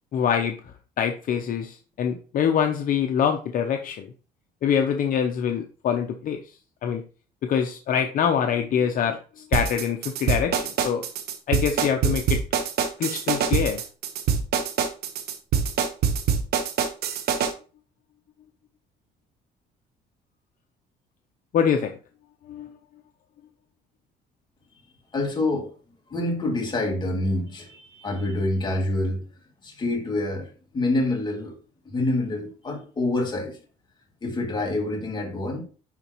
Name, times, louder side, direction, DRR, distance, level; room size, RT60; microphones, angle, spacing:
voice 1, 0.1-0.6 1.0-4.1 4.6-6.5 6.8-7.0 7.4-11.0 11.5-12.4 13.0-13.8 21.5-22.0 22.5-22.7, left 8 dB, 55° left, 0.7 m, -24 dB
sound 1, 9.5-17.5, right 7 dB, 70° right, 1.1 m, -24 dB
voice 2, 25.1-25.7 26.1-29.2 29.6-31.5 31.9-33.6 34.2-35.6, left 2 dB, 25° left, 2.4 m, -26 dB
10.5 x 4.0 x 3.0 m
cardioid pair, 110°, 17 cm